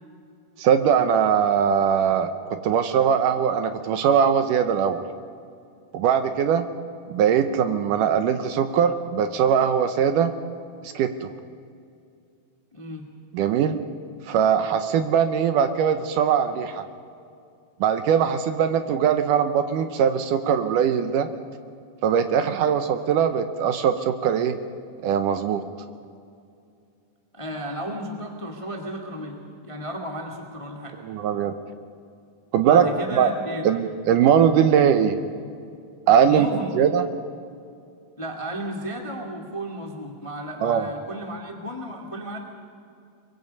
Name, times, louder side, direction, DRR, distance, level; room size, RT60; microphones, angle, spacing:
voice 1, 0.6-5.0 5.9-6.7 7.1-10.3 10.8-11.3 13.3-13.8 14.3-16.8 17.8-21.3 22.0-24.6 25.0-25.6 31.0-31.5 32.5-33.3 33.6-35.2 36.1-37.0 40.6-40.9, right 8 dB, 75° right, 8 dB, 2.2 m, -21 dB
voice 2, 12.7-13.1 27.3-31.0 32.6-33.7 36.2-36.7 38.2-42.4, equal, 15° left, 1 dB, 1.0 m, -34 dB
24.0 x 22.5 x 5.3 m, 2.4 s
omnidirectional pair, 4.1 m